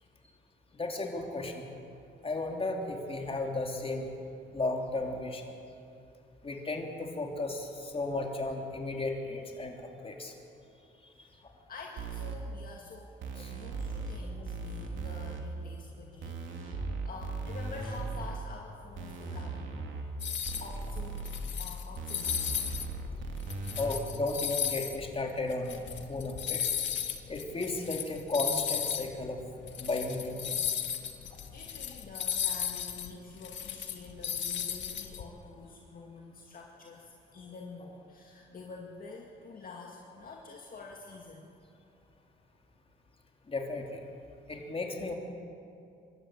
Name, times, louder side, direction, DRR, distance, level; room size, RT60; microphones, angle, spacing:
voice 1, 0.7-1.7 2.2-4.1 4.5-5.5 6.4-10.3 13.3-13.5 23.8-26.7 27.3-29.4 29.8-30.7 43.5-44.0 44.5-45.1, left 2 dB, 30° left, 1 dB, 3.3 m, -34 dB
voice 2, 11.2-13.2 13.5-19.7 20.6-21.3 21.6-22.6 31.0-31.2 31.5-41.5, left 3 dB, 45° left, -1 dB, 2.2 m, -47 dB
sound 1, 12.0-12.4 13.2-14.2 14.5-15.4 16.2-18.4 19.0-20.0 20.5-21.4 22.0-24.0, right 3 dB, 75° right, 2.7 m, -38 dB
sound 2, 20.2-20.7 21.1-22.9 23.3-29.1 29.4-29.5 29.7-35.2, left 9 dB, 70° left, 1.7 m, -35 dB
25.0 x 13.0 x 8.7 m, 2.6 s
cardioid pair, 90°, 20 cm